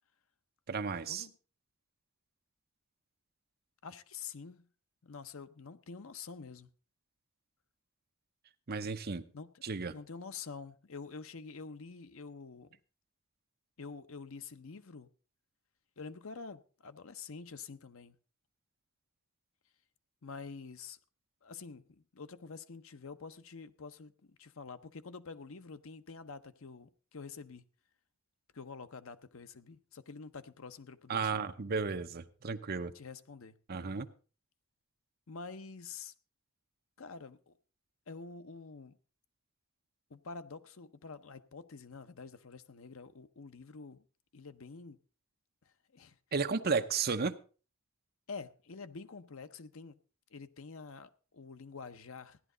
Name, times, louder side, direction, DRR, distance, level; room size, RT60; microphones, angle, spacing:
voice 1, 0.7-1.3 8.7-9.2 9.6-9.9 31.1-32.9 33.7-34.1 46.3-47.4, right 5 dB, 45° right, 0.8 m, -33 dB
voice 2, 3.8-4.7 5.0-6.7 9.3-9.6 9.9-12.8 13.8-15.1 16.0-18.1 20.2-21.0 21.4-27.6 28.5-31.4 32.9-33.5 35.3-36.1 37.0-37.6 38.1-39.0 40.1-44.0 44.3-45.0 45.6-46.2 46.7-46.9 48.3-50.0 50.3-52.4, left 4 dB, 70° left, 0.8 m, -47 dB
15.5 x 11.0 x 3.9 m
head